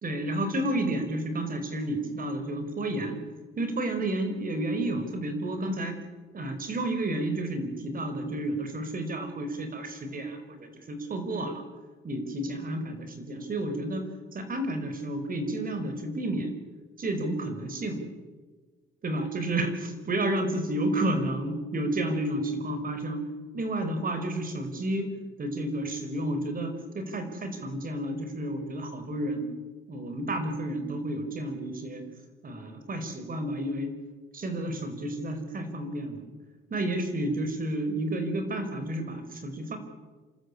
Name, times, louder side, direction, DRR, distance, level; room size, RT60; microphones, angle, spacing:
voice 1, 0.0-3.2 3.6-6.0 6.3-11.6 12.0-16.5 17.0-18.0 19.0-23.3 23.5-29.5 29.9-32.0 32.4-34.0 34.3-36.3 36.7-39.8, right 1 dB, 45° right, 8 dB, 5.0 m, -31 dB
28.5 x 13.5 x 8.8 m, 1.4 s
cardioid pair, 90°, 20 cm